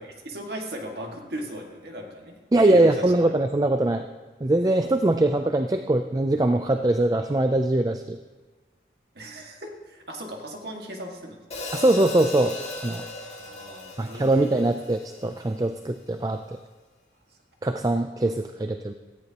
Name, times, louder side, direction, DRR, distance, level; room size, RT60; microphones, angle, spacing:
voice 1, 0.0-3.3 9.1-11.4 13.5-14.6, right 1 dB, 65° right, 1 dB, 1.9 m, -38 dB
voice 2, 2.5-4.1 4.4-8.2 11.7-12.6 12.8-13.0 14.0-16.4 17.6-18.9, right 2 dB, 20° right, 7 dB, 0.4 m, -22 dB
Hi-hat, 11.5-15.8, left 3 dB, 35° left, 2.0 m, -38 dB
17.0 x 14.0 x 2.9 m, 1.3 s
head